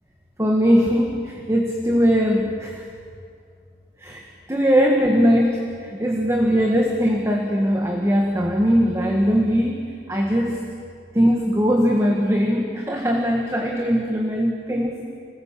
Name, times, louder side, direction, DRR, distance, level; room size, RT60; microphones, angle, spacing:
voice 1, 0.4-2.8 4.0-4.2 4.5-10.6 11.1-15.1, equal, 15° right, 0 dB, 1.8 m, -20 dB
26.0 x 20.0 x 7.5 m, 2.2 s
head